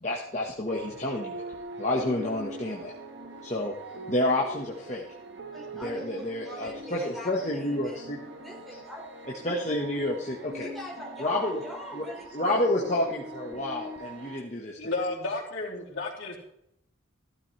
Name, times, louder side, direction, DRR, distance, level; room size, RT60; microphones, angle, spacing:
voice 1, 0.0-1.4 1.8-2.9 3.4-3.7 4.1-5.0 5.7-8.2 9.4-10.7 11.2-11.6 11.9-12.1 12.3-14.8, left 1 dB, 35° left, -3 dB, 1.3 m, -29 dB
sound 1, 0.7-14.4, right 2 dB, 70° right, 1.5 m, -42 dB
voice 2, 5.5-8.0 8.3-9.2 10.5-12.6, equal, ahead, -5 dB, 4.2 m, -42 dB
voice 3, 14.8-16.4, left 2 dB, 85° left, -2 dB, 3.3 m, -32 dB
15.0 x 12.5 x 3.3 m, 0.76 s
head